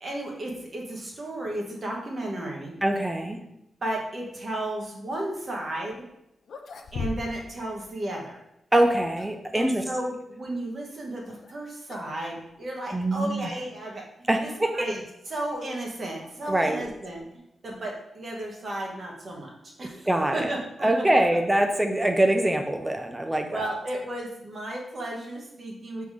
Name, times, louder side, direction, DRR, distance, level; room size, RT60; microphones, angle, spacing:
voice 1, 0.0-2.8 3.8-6.1 6.9-8.4 9.5-21.2 23.5-26.1, right 1 dB, 35° right, -1 dB, 1.2 m, -34 dB
voice 2, 2.8-3.4 8.7-9.8 12.9-13.5 14.3-14.9 16.5-16.9 20.1-20.5 20.8-23.7, right 1 dB, 10° right, 5 dB, 0.4 m, -24 dB
sound 1, 5.9-6.0 6.4-7.5 7.8-7.9 8.8-9.5 11.3-11.5 11.9-12.2 12.5-12.6 13.4-13.5 15.2-17.4, left 4 dB, 60° left, 0.5 m, -40 dB
6.0 x 3.5 x 4.8 m, 0.84 s
wide cardioid pair, 175°, 0 cm